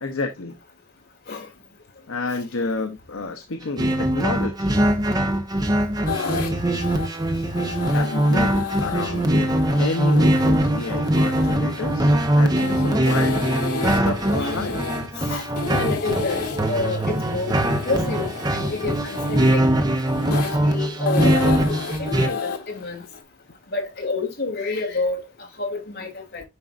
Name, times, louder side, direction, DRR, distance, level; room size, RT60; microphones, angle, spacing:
voice 1, 0.0-0.6 2.1-4.8 6.3-6.6 7.9-13.4 13.9-14.8, left 3 dB, 65° left, 0.8 m, -30 dB
sound 1, 3.8-22.3, right 1 dB, 15° right, 0.9 m, -22 dB
sound 2, 6.1-23.2, left 5 dB, 85° left, 1.5 m, -32 dB
voice 2, 15.2-16.4 16.7-17.5 17.8-19.2 19.5-19.7 20.3-23.0 23.7-26.4, left 3 dB, 45° left, 2.6 m, -29 dB
9.7 x 5.2 x 2.5 m
head